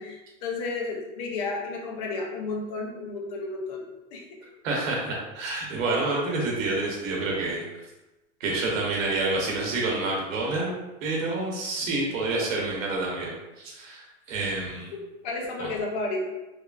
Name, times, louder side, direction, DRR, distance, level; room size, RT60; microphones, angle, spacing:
voice 1, 0.0-3.9 4.1-4.4 15.2-16.3, left 3 dB, 35° left, 0 dB, 0.4 m, -32 dB
voice 2, 4.6-7.6 8.4-10.7 11.0-14.9 15.6-15.7, right 2 dB, 85° right, -2 dB, 0.9 m, -28 dB
3.2 x 2.3 x 2.4 m, 1.0 s
supercardioid pair, 165°, 38 cm